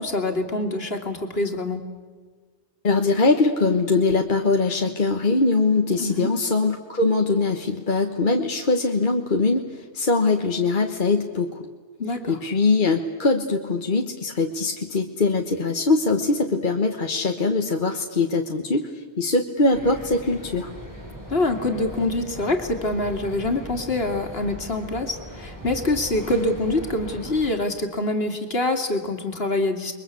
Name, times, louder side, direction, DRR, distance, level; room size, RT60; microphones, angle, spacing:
voice 1, 0.0-1.8 6.0-6.3 12.0-12.4 21.3-30.0, left 2 dB, 65° left, 6 dB, 2.7 m, -25 dB
voice 2, 2.8-11.6 12.3-20.7, left 3 dB, 50° left, 4 dB, 1.5 m, -22 dB
sound 1, 19.7-27.5, equal, 15° right, 7.2 m, -39 dB
29.5 x 22.5 x 8.3 m, 1.4 s
omnidirectional pair, 1.1 m